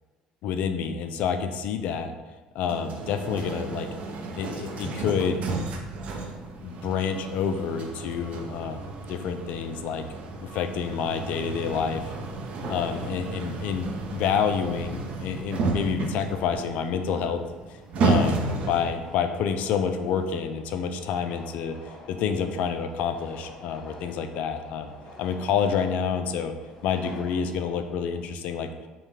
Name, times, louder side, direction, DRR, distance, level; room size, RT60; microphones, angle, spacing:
voice 1, 0.4-2.1 2.5-3.9 4.3-5.4 6.6-10.0 10.4-12.0 12.7-17.4 18.0-21.8 22.1-24.9 25.2-26.5 26.8-28.7, left 7 dB, 70° left, 8 dB, 0.4 m, -28 dB
sound 1, 2.6-19.0, right 3 dB, 55° right, 0.6 m, -32 dB
sound 2, 11.7-28.2, left 1 dB, 40° left, 1.3 m, -49 dB
5.4 x 2.2 x 3.3 m, 1.2 s
cardioid pair, 105°, 3 cm